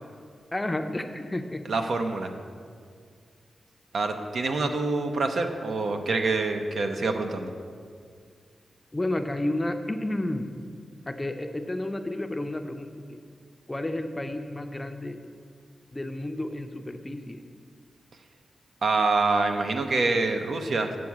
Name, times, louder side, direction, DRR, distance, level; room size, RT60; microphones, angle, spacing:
voice 1, 0.5-1.6 8.9-10.5 11.1-13.2 13.7-15.2 15.9-17.4, left 1 dB, 15° left, 7 dB, 0.5 m, -31 dB
voice 2, 1.6-2.3 3.9-7.5 18.8-21.0, right 3 dB, 70° right, 5 dB, 0.7 m, -26 dB
7.8 x 4.7 x 7.2 m, 2.1 s
wide cardioid pair, 95°, 0 cm